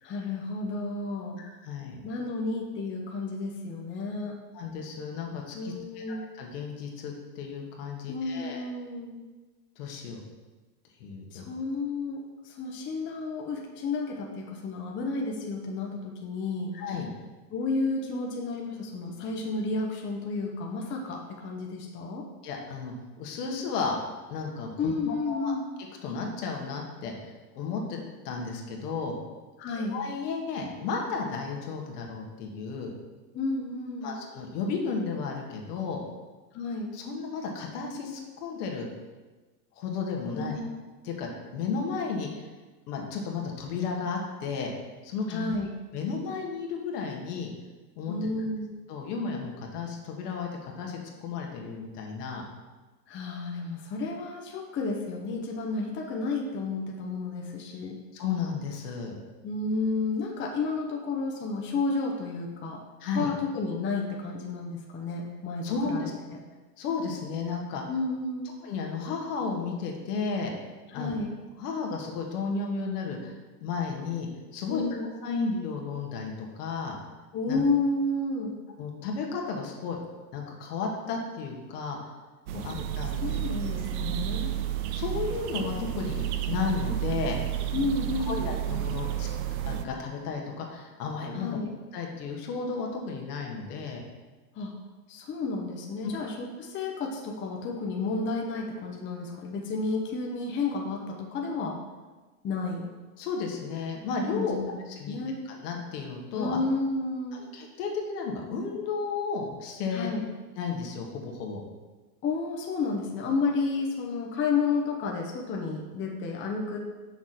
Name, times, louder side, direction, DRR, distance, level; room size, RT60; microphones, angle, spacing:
voice 1, 0.0-1.4 2.0-4.4 5.5-6.3 8.1-9.2 11.3-16.7 17.5-22.3 24.8-25.7 29.6-30.0 33.3-34.1 36.5-37.0 40.3-40.6 45.3-45.7 48.1-48.7 53.1-58.0 59.4-62.8 63.1-66.1 67.9-68.5 70.9-71.3 74.7-75.1 77.3-78.6 82.5-82.7 83.2-84.5 87.7-88.4 91.3-91.8 94.6-94.8 95.1-101.8 102.4-102.9 104.3-104.8 105.1-105.4 106.3-107.5 109.9-110.3 112.2-116.8, left 3 dB, 25° left, 1 dB, 0.8 m, -31 dB
voice 2, 1.4-2.0 4.5-8.6 9.8-10.2 11.0-11.5 16.7-17.1 22.4-24.0 24.3-25.5 26.0-28.0 28.2-29.1 29.9-32.9 34.0-36.0 36.9-38.9 39.8-40.6 41.0-42.5 42.9-44.7 45.0-45.6 45.9-47.5 48.0-48.2 48.9-52.4 58.1-59.2 63.0-63.3 65.6-65.9 66.8-67.8 68.6-70.5 70.9-71.1 71.6-74.8 75.2-77.0 77.5-77.6 78.8-80.0 80.3-82.1 82.6-83.4 84.0-84.1 84.9-87.4 88.2-89.3 89.6-91.6 91.9-94.0 96.0-96.1 103.2-104.6 104.9-105.2 105.4-106.6 107.3-110.1 110.6-111.6, left 5 dB, 70° left, 0 dB, 1.6 m, -33 dB
sound 1, 82.5-89.9, right 11 dB, 60° right, 0.7 m, -31 dB
6.1 x 6.0 x 4.3 m, 1.3 s
supercardioid pair, 125°, 48 cm